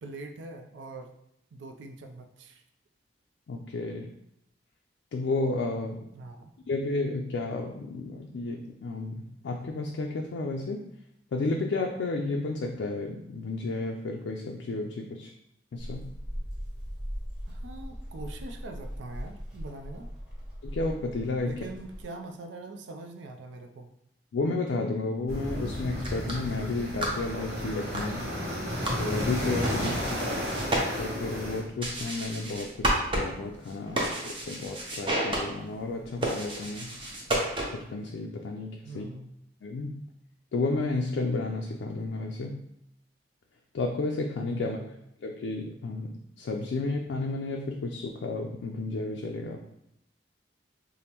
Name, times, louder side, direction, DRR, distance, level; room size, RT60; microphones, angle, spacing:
voice 1, 0.0-1.1 1.5-2.6 6.1-6.5 17.5-20.1 21.4-23.9 29.8-30.3 38.8-39.3 44.6-44.9, right 2 dB, 80° right, 6 dB, 0.4 m, -43 dB
voice 2, 3.5-4.1 5.1-6.1 6.7-10.8 11.3-15.3 15.7-16.1 20.6-21.6 24.3-28.3 29.0-30.0 31.0-32.7 33.1-36.9 37.7-39.0 39.6-40.0 40.5-42.6 43.7-44.9 45.2-49.7, left 3 dB, 75° left, 1 dB, 0.3 m, -32 dB
sound 1, 15.8-22.0, equal, ahead, 1.2 m, -39 dB
sound 2, 25.3-31.6, equal, 50° right, 1.0 m, -32 dB
sound 3, 26.0-38.0, right 1 dB, 25° right, 0.6 m, -33 dB
5.1 x 2.0 x 2.9 m, 0.81 s
head